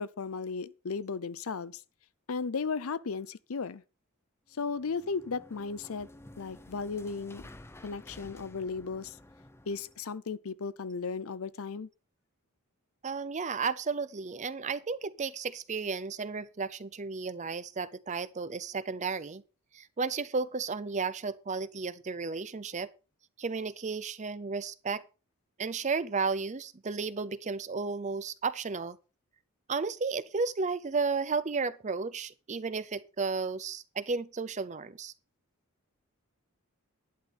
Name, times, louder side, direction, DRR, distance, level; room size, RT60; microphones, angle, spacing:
voice 1, 0.0-1.8 2.3-3.8 4.6-6.1 6.4-7.4 7.8-9.2 9.7-11.9, left 5 dB, 70° left, 0.6 m, -35 dB
sound 1, 4.5-10.1, left 1 dB, 10° left, 0.6 m, -52 dB
voice 2, 13.0-19.4 19.7-22.9 23.4-25.0 25.6-29.0 29.7-35.1, right 4 dB, 30° right, 0.5 m, -33 dB
11.0 x 9.8 x 4.2 m
head